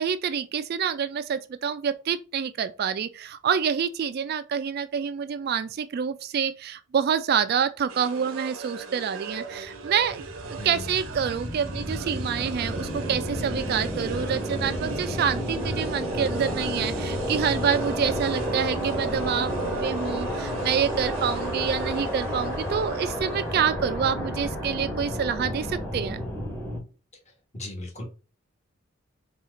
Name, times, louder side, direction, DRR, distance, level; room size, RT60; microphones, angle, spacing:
voice 1, 0.0-26.2, right 7 dB, 50° right, 0.3 m, -27 dB
sound 1, 7.9-23.5, right 4 dB, 75° right, 0.7 m, -40 dB
sound 2, 9.7-26.8, equal, 10° left, 1.0 m, -31 dB
voice 2, 27.5-28.0, left 1 dB, 35° left, 1.3 m, -36 dB
4.3 x 2.4 x 3.7 m
head